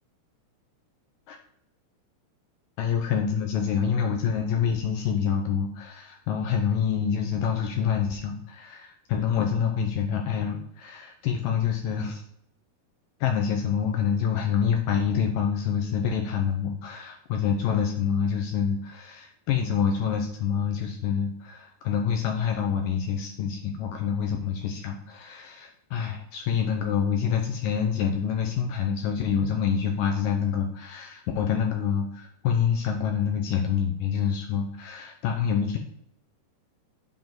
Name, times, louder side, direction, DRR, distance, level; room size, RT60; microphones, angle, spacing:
voice 1, 2.8-12.2 13.2-35.8, left 7 dB, 85° left, 2 dB, 1.9 m, -27 dB
7.5 x 3.6 x 5.9 m, 0.73 s
omnidirectional pair, 4.7 m